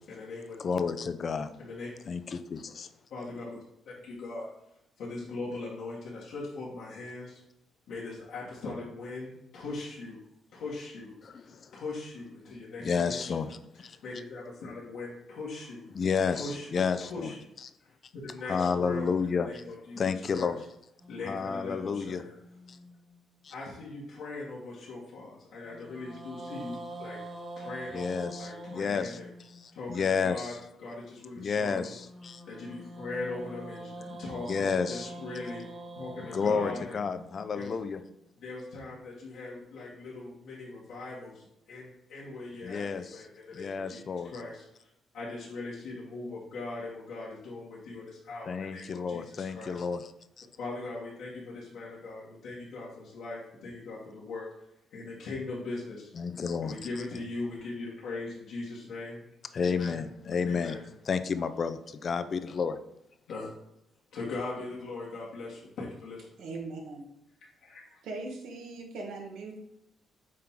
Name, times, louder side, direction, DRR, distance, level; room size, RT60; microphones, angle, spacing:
voice 1, 0.1-0.5 1.6-1.9 3.1-3.6 3.9-4.5 5.0-7.4 7.9-10.2 10.5-11.1 11.7-13.4 13.7-15.8 16.3-17.4 18.1-20.5 21.1-22.4 23.5-27.2 27.6-29.3 29.7-31.9 32.5-35.6 36.0-37.0 37.5-37.8 38.4-41.4 41.7-44.6 45.1-49.8 50.6-54.5 54.9-56.1 56.6-59.2 59.6-60.0 60.4-60.8 63.3-63.5 64.1-66.2 67.6-68.0, left 3 dB, 80° left, -7 dB, 2.0 m, -40 dB
voice 2, 0.6-1.5 2.1-2.9 11.2-11.6 12.8-13.6 13.8-14.0 15.9-17.3 18.5-19.5 20.0-20.6 21.3-22.2 22.7-22.8 23.4-23.5 27.9-29.2 29.6-30.6 31.4-32.4 34.1-34.2 34.5-35.1 36.3-38.0 42.6-43.0 43.5-44.3 48.5-50.0 50.4-50.5 56.2-56.8 59.5-60.8 61.1-62.8, left 5 dB, 50° left, 11 dB, 0.5 m, -31 dB
sound 1, 21.0-23.4 25.6-29.8 31.9-38.1, right 1 dB, 30° right, 1.8 m, -45 dB
voice 3, 66.4-67.0 68.0-69.6, right 3 dB, 85° right, 1 dB, 1.5 m, -39 dB
7.4 x 4.4 x 3.8 m, 0.82 s
cardioid pair, 80°, 0 cm